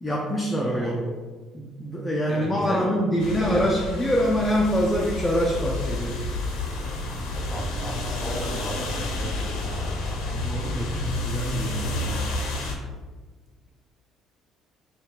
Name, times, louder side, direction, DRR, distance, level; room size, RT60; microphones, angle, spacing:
voice 1, 0.0-1.2 1.5-6.2 10.2-12.2, equal, 10° left, -2 dB, 0.5 m, -25 dB
voice 2, 2.3-2.8 3.2-3.6 7.3-10.1, right 1 dB, 5° right, -5 dB, 1.4 m, -35 dB
sound 1, 3.2-12.7, left 2 dB, 90° left, 0.7 m, -30 dB
3.5 x 2.3 x 4.1 m, 1.4 s
cardioid pair, 110°, 0 cm